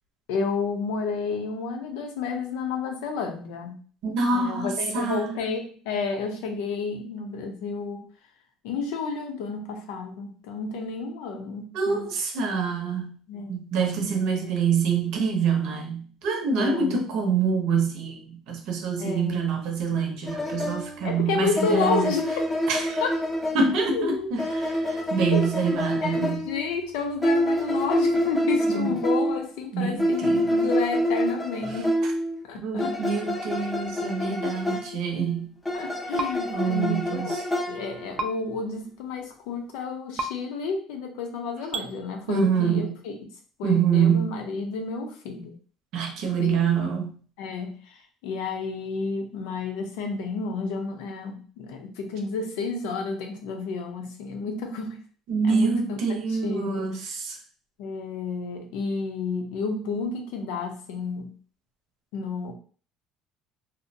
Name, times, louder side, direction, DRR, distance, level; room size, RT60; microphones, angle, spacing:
voice 1, 0.3-8.1 8.6-12.1 13.3-13.5 14.4-14.5 16.6-17.0 19.0-19.4 21.0-22.3 23.0-23.1 23.9-24.3 25.3-32.0 32.5-33.0 34.7-34.8 35.7-43.1 43.6-45.5 46.4-46.7 47.4-55.0 55.4-56.0 56.3-56.9 57.8-61.3 62.1-62.5, left 4 dB, 85° left, 4 dB, 0.6 m, -31 dB
voice 2, 4.0-5.3 11.7-13.1 13.5-22.1 22.7-23.0 23.5-26.5 28.7-28.9 29.7-30.5 31.7-31.8 32.6-35.5 36.5-37.4 42.3-42.9 43.6-44.3 45.9-47.1 55.3-57.4, right 5 dB, 70° right, 3 dB, 0.7 m, -26 dB
sound 1, 20.3-23.9 24.4-26.7 27.2-29.5 30.0-32.4 32.8-35.0 35.7-38.4, equal, 10° left, 0.5 m, -27 dB
sound 2, 36.2-36.3 38.2-38.3 40.2-40.3 41.7-41.9, right 2 dB, 40° right, 0.4 m, -28 dB
2.6 x 2.1 x 2.6 m, 0.42 s
cardioid pair, 125°, 0 cm